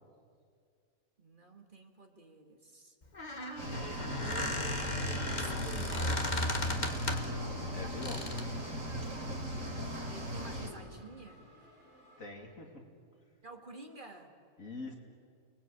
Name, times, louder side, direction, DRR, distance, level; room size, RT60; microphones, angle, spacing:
voice 1, 1.2-3.0 3.3-6.9 9.4-11.5 13.4-14.4, right 3 dB, 35° right, 4 dB, 2.1 m, -50 dB
Squeak, 3.0-7.4 8.0-8.5, left 1 dB, 35° left, 1.7 m, -35 dB
sound 1, 3.6-10.7, equal, 65° right, 3.9 m, -38 dB
sound 2, 4.2-12.3, right 1 dB, 55° left, 8.6 m, -61 dB
voice 2, 7.7-8.3 12.2-12.8 14.6-15.0, left 2 dB, 70° left, 2 dB, 3.2 m, -44 dB
29.5 x 20.5 x 8.6 m, 2.2 s
omnidirectional pair, 1.4 m